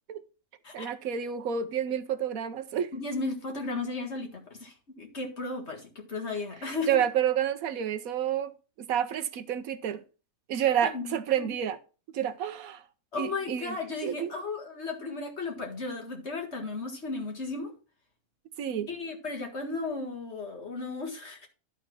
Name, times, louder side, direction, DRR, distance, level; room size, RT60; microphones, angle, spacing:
voice 1, 0.7-2.9 6.9-8.5 8.8-10.0 10.5-11.8 12.1-12.8 13.2-13.8 14.0-14.3 18.6-18.9, right 9 dB, 75° right, 1.1 m, -29 dB
voice 2, 2.9-7.0 10.8-11.5 13.1-17.7 18.9-21.5, left 3 dB, 50° left, 2.1 m, -35 dB
11.5 x 4.1 x 5.9 m
omnidirectional pair, 1.5 m